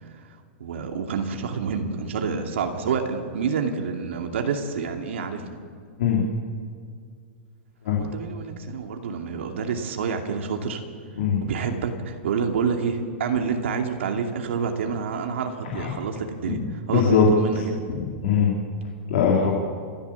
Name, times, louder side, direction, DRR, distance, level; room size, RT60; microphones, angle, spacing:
voice 1, 0.6-5.4 8.0-10.8 11.4-17.8, right 5 dB, 75° right, 3 dB, 2.5 m, -28 dB
voice 2, 16.9-17.3 17.9-18.5 19.1-19.5, left 7 dB, 55° left, -2 dB, 3.3 m, -21 dB
29.5 x 13.0 x 7.2 m, 2.1 s
supercardioid pair, 175°, 7 cm